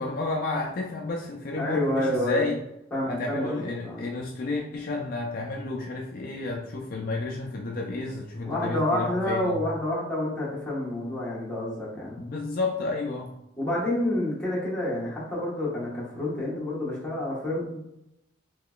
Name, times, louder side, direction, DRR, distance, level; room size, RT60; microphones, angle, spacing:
voice 1, 0.0-2.6 3.1-9.6 12.2-13.3, left 3 dB, 50° left, 0 dB, 0.4 m, -31 dB
voice 2, 1.5-2.4 2.9-4.1 8.4-12.2 13.6-17.8, left 1 dB, 5° left, -8 dB, 1.2 m, -29 dB
3.7 x 2.9 x 2.3 m, 0.85 s
head